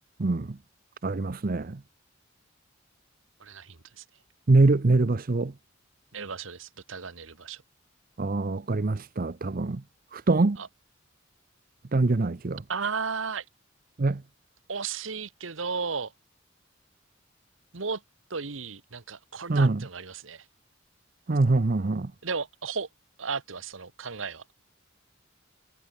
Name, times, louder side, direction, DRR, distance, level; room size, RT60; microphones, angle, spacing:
voice 1, 0.2-0.6 1.0-1.8 4.5-5.5 8.2-9.8 10.1-10.6 11.9-12.6 14.0-14.2 19.5-19.8 21.3-22.1, right 2 dB, 45° right, 0.7 m, -24 dB
voice 2, 3.4-4.0 6.1-7.6 10.6-10.7 12.7-13.4 14.7-16.1 17.7-18.0 18.3-20.5 22.2-22.9 23.2-24.4, right 5 dB, 85° right, 1.4 m, -34 dB
head